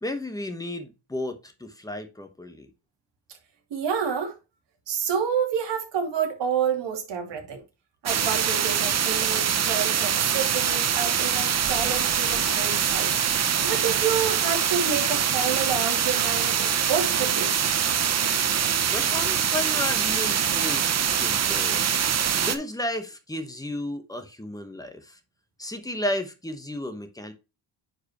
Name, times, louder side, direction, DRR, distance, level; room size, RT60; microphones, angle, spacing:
voice 1, 0.0-2.7 18.9-21.8 22.3-25.2 25.6-27.3, left 1 dB, 10° left, 1.0 m, -33 dB
voice 2, 3.7-4.4 4.9-7.6 8.0-17.6, right 7 dB, 65° right, 2.7 m, -29 dB
sound 1, 8.1-22.6, right 8 dB, 35° right, 0.7 m, -24 dB
9.6 x 4.7 x 2.9 m
wide cardioid pair, 170°, 46 cm